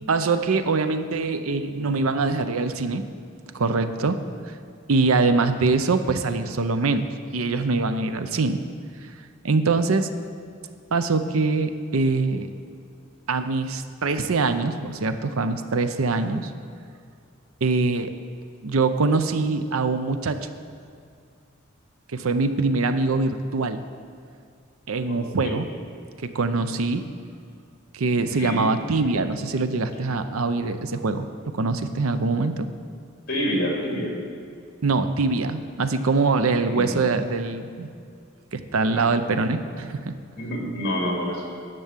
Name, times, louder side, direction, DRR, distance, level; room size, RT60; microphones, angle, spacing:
voice 1, 0.0-3.1 3.5-4.2 4.9-7.1 7.3-8.6 9.4-10.1 10.9-12.5 13.3-16.5 17.6-18.1 18.6-20.5 22.1-23.8 24.9-25.7 26.2-27.0 27.9-31.3 31.5-32.7 34.8-37.9 38.5-40.1, right 3 dB, 90° right, 10 dB, 0.7 m, -23 dB
voice 2, 25.1-25.6 28.3-28.7 33.3-34.2 36.6-37.0 38.9-39.2 40.4-41.4, equal, 50° left, -1 dB, 2.7 m, -28 dB
11.0 x 6.9 x 7.4 m, 2.3 s
head